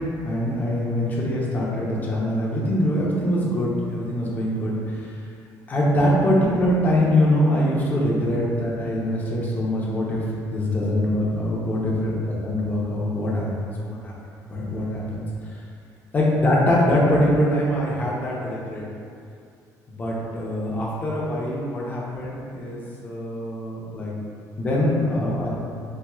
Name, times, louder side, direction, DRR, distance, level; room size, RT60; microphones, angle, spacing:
voice 1, 0.2-5.2 5.7-14.1 14.5-15.6 16.1-18.8 19.9-24.1 24.6-25.5, left 1 dB, 25° left, -5 dB, 0.6 m, -23 dB
4.3 x 2.2 x 2.3 m, 2.4 s
cardioid pair, 145°, 7 cm